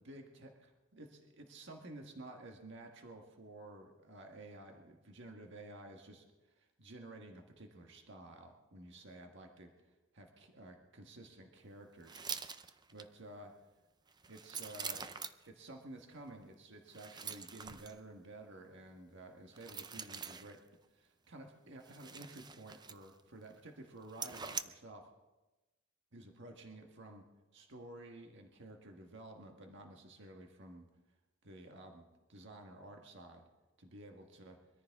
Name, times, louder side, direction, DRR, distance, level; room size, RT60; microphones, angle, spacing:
voice 1, 0.0-13.6 14.3-15.1 15.5-20.6 20.9-25.1 26.1-30.9 31.4-33.5 33.8-34.6, right 2 dB, 60° right, 3 dB, 1.5 m, -53 dB
sound 1, 12.0-13.1 14.1-15.5 16.9-18.0 19.5-20.6 21.8-23.2 23.5-23.6 24.1-24.6, right 6 dB, 20° right, 0.5 m, -44 dB
23.0 x 14.0 x 3.6 m, 1.1 s
head